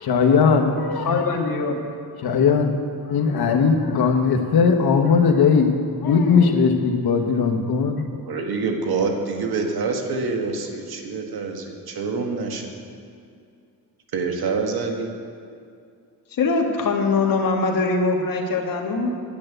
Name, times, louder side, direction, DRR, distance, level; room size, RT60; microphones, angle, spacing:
voice 1, 0.0-1.2 2.2-2.7 3.0-8.0, left 5 dB, 80° left, 5 dB, 1.3 m, -19 dB
voice 2, 1.1-1.8 16.3-19.1, left 4 dB, 60° left, 2 dB, 1.7 m, -22 dB
voice 3, 8.3-12.7 14.1-15.1, right 4 dB, 75° right, 3 dB, 1.7 m, -26 dB
10.5 x 8.0 x 8.9 m, 2.4 s
cardioid pair, 120°, 37 cm